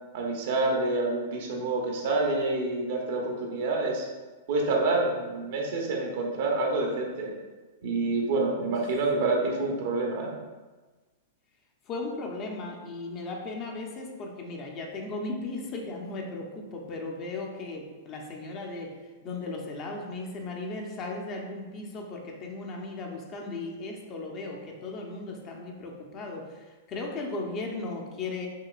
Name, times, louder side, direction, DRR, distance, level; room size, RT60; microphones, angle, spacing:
voice 1, 0.1-4.1 4.5-7.3 7.8-10.3, right 3 dB, 60° right, 0 dB, 0.9 m, -27 dB
voice 2, 11.9-28.5, left 3 dB, 35° left, 1 dB, 0.7 m, -36 dB
5.7 x 2.9 x 2.5 m, 1.3 s
hypercardioid pair, 110°, 0 cm